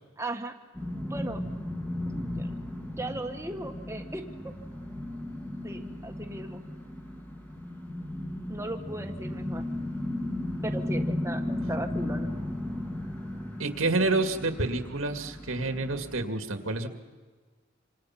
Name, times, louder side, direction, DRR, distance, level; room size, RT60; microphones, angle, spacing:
voice 1, 0.2-0.5 0.9-1.4 2.0-2.5 3.0-4.5 5.6-6.6 8.5-9.7 10.6-12.3, right 1 dB, 15° right, 5 dB, 1.6 m, -37 dB
sound 1, 0.7-16.2, left 1 dB, 10° left, 2.0 m, -35 dB
voice 2, 13.6-16.9, right 2 dB, 75° right, 6 dB, 2.1 m, -28 dB
27.0 x 26.0 x 5.8 m, 1.5 s
head